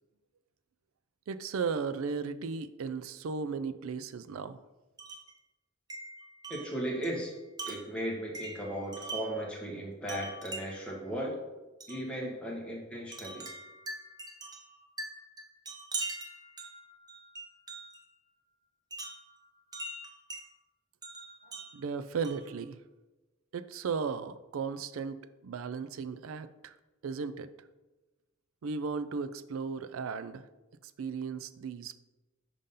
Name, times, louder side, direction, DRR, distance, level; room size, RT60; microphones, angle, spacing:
voice 1, 1.3-4.6 21.5-22.8 23.5-26.7 27.0-27.5 28.6-30.5 30.8-32.0, right 5 dB, 75° right, 12 dB, 0.4 m, -36 dB
Wind chime, 5.0-5.4 5.9-9.5 10.1-10.9 11.8-12.1 13.1-18.0 18.9-20.5 21.0-22.5, right 2 dB, 20° right, 0.6 m, -43 dB
voice 2, 6.5-7.3 7.6-11.4 11.9-13.5, right 1 dB, 5° left, -3 dB, 1.2 m, -36 dB
5.2 x 3.7 x 5.5 m, 1.1 s
head